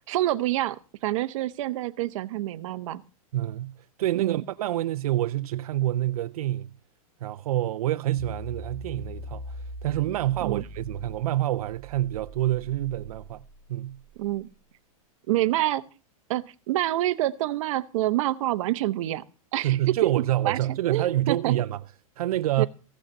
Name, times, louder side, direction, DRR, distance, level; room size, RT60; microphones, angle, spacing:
voice 1, 0.1-0.8 1.0-3.0 4.2-4.4 10.4-10.6 14.2-14.5 15.3-15.8 16.3-19.2 19.5-20.1 20.4-20.6 20.9-21.5 22.6-22.7, right 15 dB, 60° right, 0.8 m, -27 dB
voice 2, 3.3-6.7 7.2-13.4 13.7-14.0 19.5-21.8 22.2-22.7, right 14 dB, 85° right, 0.4 m, -27 dB
sound 1, 8.2-14.4, equal, 15° right, 1.9 m, -42 dB
15.5 x 6.5 x 5.3 m
supercardioid pair, 150°, 19 cm